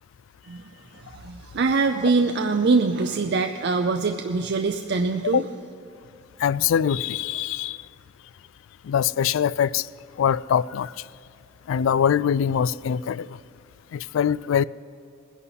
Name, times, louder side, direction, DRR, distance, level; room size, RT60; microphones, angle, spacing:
voice 1, 0.9-5.4, right 4 dB, 60° right, 0.5 m, -23 dB
voice 2, 6.4-7.8 8.8-9.9 10.2-10.9 11.7-13.3 13.9-14.6, left 8 dB, 75° left, 0.3 m, -23 dB
20.0 x 11.0 x 4.1 m
head